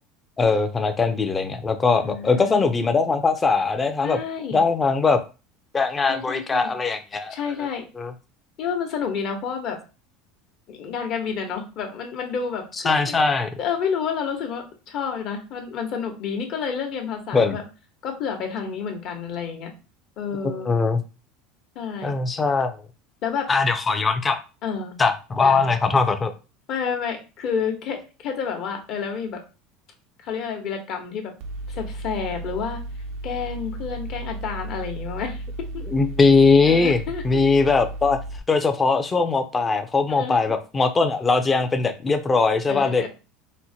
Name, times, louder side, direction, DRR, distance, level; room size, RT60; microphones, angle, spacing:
voice 1, 0.4-4.2 4.5-5.2 5.7-7.4 8.0-8.1 12.8-13.5 17.3-17.6 20.4-21.0 22.0-22.8 23.5-24.4 25.0-26.3 35.9-38.2 38.5-43.1, left 4 dB, 20° left, 8 dB, 0.5 m, -20 dB
voice 2, 2.0-2.7 4.0-4.6 6.1-6.7 7.3-7.8 8.6-9.8 10.7-13.2 13.6-17.6 18.0-19.7 20.2-20.7 21.7-22.1 23.2-23.5 24.6-25.0 25.4-25.7 26.7-29.4 30.2-31.3 31.7-32.8 33.2-35.4 35.7-35.8 36.7-37.2 40.2-40.4 42.7-43.1, left 6 dB, 55° left, 3 dB, 1.0 m, -29 dB
Mechanical fan, 31.4-38.4, right 1 dB, 60° right, 0.4 m, -34 dB
4.2 x 2.1 x 2.7 m, 0.31 s
supercardioid pair, 120°, 0 cm